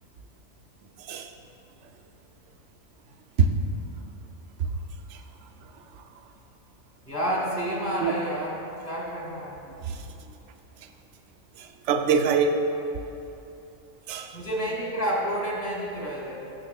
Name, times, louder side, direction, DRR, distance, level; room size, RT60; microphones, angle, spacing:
voice 1, 1.0-1.3 3.4-3.5 4.6-4.7 5.1-5.2 6.0-6.1 8.0-8.1 9.8-10.0 11.6-12.5 14.1-14.4, right 6 dB, 70° right, 5 dB, 0.9 m, -24 dB
voice 2, 7.0-9.6 14.3-16.5, equal, 35° left, -4 dB, 1.7 m, -30 dB
12.5 x 7.0 x 2.3 m, 2.9 s
omnidirectional pair, 1.3 m